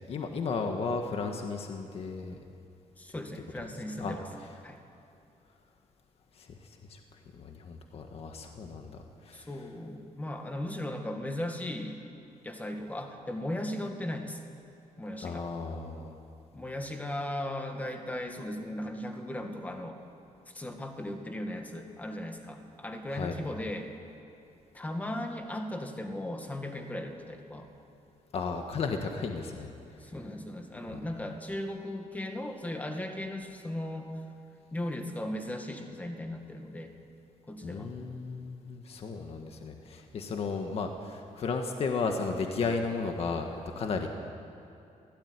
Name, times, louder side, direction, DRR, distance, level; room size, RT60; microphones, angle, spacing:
voice 1, 0.0-2.4 4.0-4.2 6.4-6.6 6.9-7.0 7.3-9.0 9.2-9.5 15.2-16.2 23.1-23.4 28.3-29.7 30.9-31.0 37.6-44.1, left 4 dB, 50° left, 4 dB, 1.8 m, -34 dB
voice 2, 3.0-4.3 4.6-4.8 9.3-12.0 12.4-14.4 15.0-15.5 16.5-20.0 20.5-23.9 24.7-27.7 30.0-34.1 34.7-36.9 37.5-37.9, left 1 dB, 10° left, 4 dB, 2.0 m, -37 dB
25.5 x 17.5 x 9.9 m, 2.7 s
wide cardioid pair, 180°, 13 cm